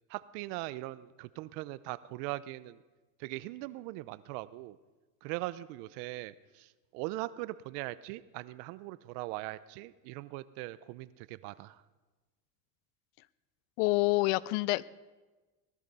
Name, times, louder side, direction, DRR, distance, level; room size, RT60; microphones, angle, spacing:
voice 1, 0.1-2.8 3.2-4.8 5.2-11.8, right 18 dB, 75° right, 16 dB, 0.8 m, -40 dB
voice 2, 13.8-14.8, left 20 dB, 70° left, 21 dB, 0.6 m, -27 dB
19.0 x 13.0 x 5.5 m, 1.2 s
supercardioid pair, 110°, 47 cm